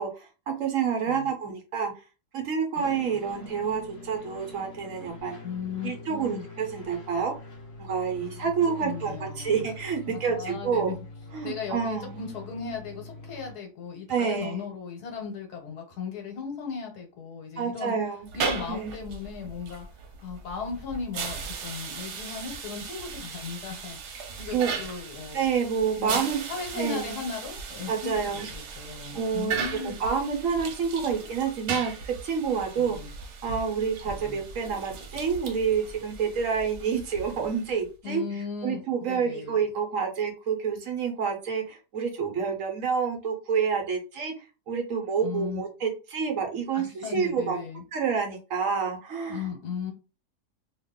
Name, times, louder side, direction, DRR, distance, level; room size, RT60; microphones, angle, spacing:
voice 1, 0.0-1.9 2.3-5.3 5.8-7.3 7.8-10.9 11.3-12.2 14.1-14.6 17.6-18.3 18.7-18.9 24.5-24.7 25.3-26.4 26.8-27.1 27.9-28.9 29.1-29.6 29.8-33.0 33.4-38.2 38.6-44.3 44.7-47.6 47.9-49.5, right 6 dB, 65° right, 3 dB, 1.0 m, -28 dB
sound 1, 2.7-13.5, left 2 dB, 35° left, 1.4 m, -44 dB
voice 2, 5.4-6.5 8.2-9.7 10.1-11.0 11.4-17.9 18.3-19.9 20.2-24.0 24.4-25.4 26.0-30.0 32.8-33.1 34.1-34.4 38.0-38.8 39.1-39.6 45.2-45.6 46.7-47.8 49.3-49.9, left 6 dB, 80° left, 3 dB, 1.4 m, -37 dB
sound 2, 18.2-37.8, right 5 dB, 80° right, 1.2 m, -37 dB
2.8 x 2.4 x 3.6 m, 0.32 s
omnidirectional pair, 1.7 m